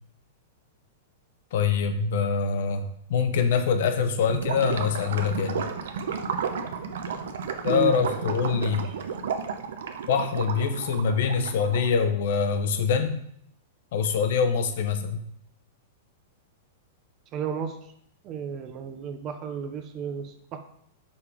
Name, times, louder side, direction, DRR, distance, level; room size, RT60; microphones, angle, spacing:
voice 1, 1.5-5.6 7.6-8.8 10.1-13.2 13.9-15.2, left 6 dB, 65° left, 8 dB, 0.9 m, -24 dB
Gurgling / Liquid, 4.2-12.0, right 6 dB, 80° right, 0.8 m, -32 dB
voice 2, 7.6-8.0 17.3-17.8 18.2-20.6, right 8 dB, 30° right, 7 dB, 0.6 m, -33 dB
5.4 x 5.1 x 4.9 m, 0.70 s
supercardioid pair, 150°, 0 cm